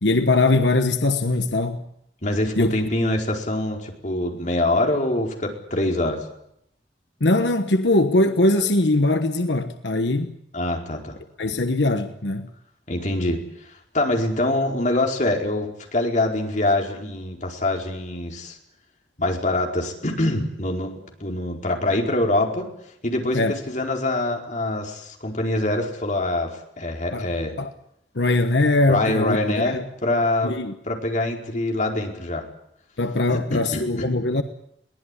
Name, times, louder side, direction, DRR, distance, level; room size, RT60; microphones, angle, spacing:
voice 1, 0.0-1.8 2.6-2.7 7.2-10.3 11.4-12.5 23.3-23.6 27.1-27.3 27.6-27.7 28.1-29.4 29.7-29.8 30.4-30.7 33.0-34.4, left 2 dB, 90° left, 1.3 m, -21 dB
voice 2, 2.2-6.2 10.5-11.2 12.9-18.6 19.2-20.9 21.2-22.7 23.0-26.5 26.8-27.5 28.9-30.5 30.8-32.4 33.3-34.1, left 1 dB, 45° left, 4.6 m, -24 dB
22.5 x 18.5 x 10.0 m
head